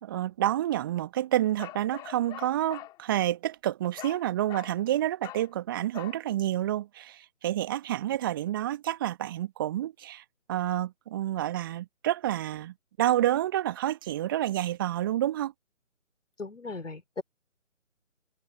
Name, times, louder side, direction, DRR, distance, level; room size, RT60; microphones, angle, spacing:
voice 1, 0.0-10.2 10.5-15.5, right 13 dB, 15° right, 1.7 m, -29 dB
Bark, 1.6-3.0 4.0-4.2 4.5-4.8 5.2-5.5 5.9-6.2, left 17 dB, 10° left, 3.1 m, -43 dB
voice 2, 16.4-17.2, left 3 dB, 65° left, 3.5 m, -37 dB
figure-of-eight pair, 150°, 40 cm